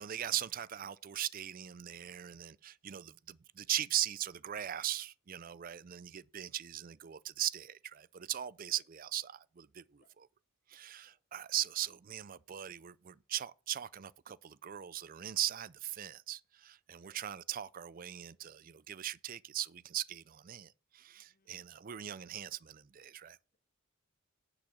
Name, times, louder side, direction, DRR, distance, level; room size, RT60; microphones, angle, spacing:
voice 1, 0.0-10.3 10.7-23.4, right 12 dB, 40° right, 0.4 m, -39 dB
voice 2, 21.2-21.6, left 3 dB, 40° left, 1.5 m, -70 dB
10.5 x 5.0 x 6.2 m
head